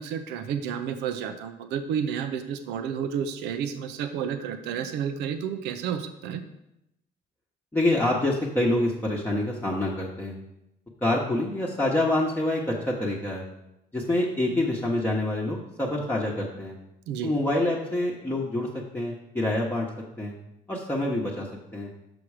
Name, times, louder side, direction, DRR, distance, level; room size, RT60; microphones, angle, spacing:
voice 1, 0.0-6.4 17.1-17.3, right 8 dB, 90° right, 9 dB, 0.6 m, -31 dB
voice 2, 7.7-10.3 11.0-13.4 13.9-16.8 17.2-18.7 18.9-19.9 20.2-20.3 20.7-21.5 21.7-21.9, left 1 dB, 10° left, -4 dB, 1.0 m, -26 dB
6.2 x 5.9 x 4.9 m, 0.85 s
cardioid pair, 110°, 17 cm